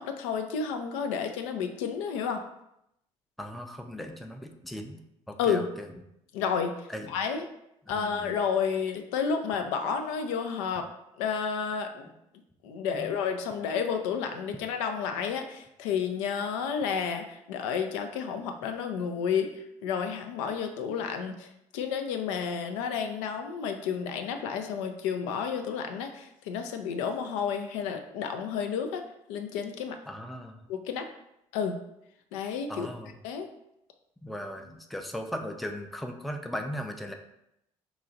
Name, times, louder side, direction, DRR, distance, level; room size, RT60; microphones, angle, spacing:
voice 1, 0.0-2.4 5.4-5.7 6.3-7.4 7.9-10.9 11.2-12.1 12.6-29.0 29.3-30.0 30.7-31.1 31.5-31.8 32.3-32.9 33.2-33.5, left 6 dB, 75° left, 6 dB, 0.4 m, -31 dB
voice 2, 3.4-5.9 6.9-7.2 7.9-8.4 12.9-13.1 30.1-30.6 32.7-33.1 34.2-37.1, equal, ahead, 4 dB, 0.4 m, -38 dB
3.0 x 2.3 x 3.8 m, 0.81 s
hypercardioid pair, 50°, 17 cm